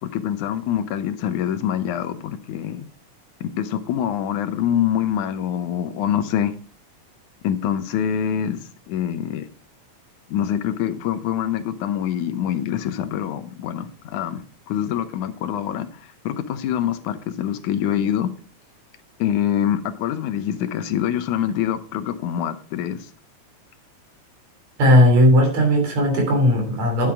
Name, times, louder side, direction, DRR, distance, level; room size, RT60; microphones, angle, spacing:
voice 1, 0.0-2.9 3.4-6.5 7.4-9.5 10.3-15.9 16.3-18.3 19.2-23.1, left 10 dB, 90° left, 2.4 m, -25 dB
voice 2, 24.8-27.1, left 1 dB, 65° right, 4.5 m, -16 dB
10.5 x 7.4 x 4.7 m
omnidirectional pair, 3.4 m